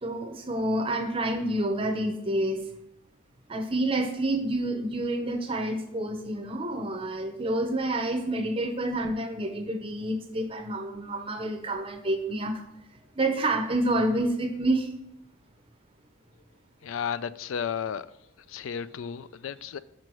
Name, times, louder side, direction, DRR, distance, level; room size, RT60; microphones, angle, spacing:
voice 1, 0.0-2.7 3.5-12.6 13.2-14.9, right 1 dB, 25° right, 6 dB, 0.6 m, -28 dB
voice 2, 16.8-18.1 18.5-19.8, left 7 dB, 75° left, 16 dB, 0.3 m, -33 dB
5.9 x 4.7 x 6.1 m, 0.80 s
head